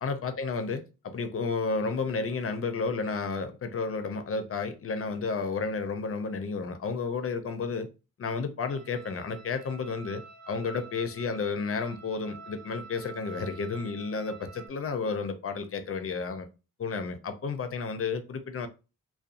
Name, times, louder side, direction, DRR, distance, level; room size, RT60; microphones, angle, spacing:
voice 1, 0.0-7.9 8.2-16.5 16.8-18.7, left 4 dB, 45° left, 0.5 m, -32 dB
sound 1, 8.7-14.7, right 5 dB, 60° right, 0.5 m, -48 dB
2.6 x 2.2 x 2.5 m
wide cardioid pair, 90°, 32 cm